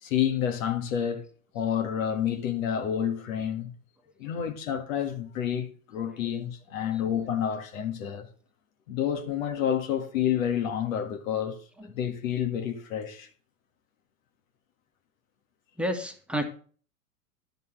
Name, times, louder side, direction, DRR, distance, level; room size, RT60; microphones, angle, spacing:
voice 1, 0.0-1.3 1.5-3.7 4.2-8.3 8.9-11.6 11.9-13.3, left 9 dB, 70° left, 1.6 m, -29 dB
voice 2, 15.8-16.4, equal, 5° right, 1.4 m, -32 dB
11.0 x 5.4 x 6.5 m
hypercardioid pair, 90°, 42 cm